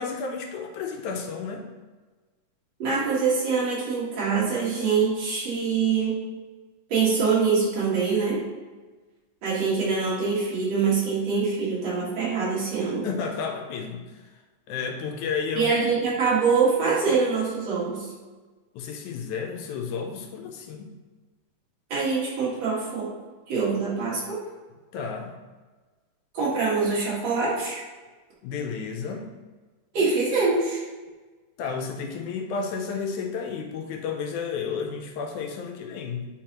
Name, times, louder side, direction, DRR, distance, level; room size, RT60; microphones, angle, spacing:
voice 1, 0.0-1.6 13.0-14.0 14.7-15.7 18.7-20.9 24.9-25.3 28.4-29.3 31.6-36.3, left 5 dB, 80° left, 3 dB, 2.0 m, -32 dB
voice 2, 2.8-6.2 6.9-8.4 9.4-13.1 15.6-18.1 21.9-23.1 23.5-24.4 26.3-27.8 29.9-30.8, right 5 dB, 60° right, -7 dB, 2.8 m, -24 dB
9.0 x 4.1 x 3.0 m, 1.3 s
omnidirectional pair, 3.5 m